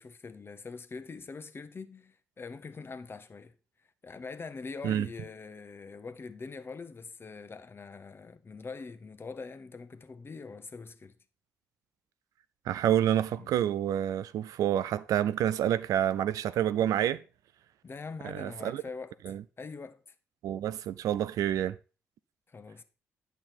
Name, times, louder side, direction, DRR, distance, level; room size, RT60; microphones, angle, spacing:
voice 1, 0.0-3.5 4.0-11.1 13.3-13.5 17.8-19.2 19.6-20.0 22.5-22.8, left 4 dB, 35° left, 0.9 m, -43 dB
voice 2, 12.7-17.2 18.2-18.8 19.2-19.4 20.4-21.8, right 11 dB, 65° right, 0.4 m, -28 dB
9.0 x 5.7 x 4.4 m
hypercardioid pair, 40°, 6 cm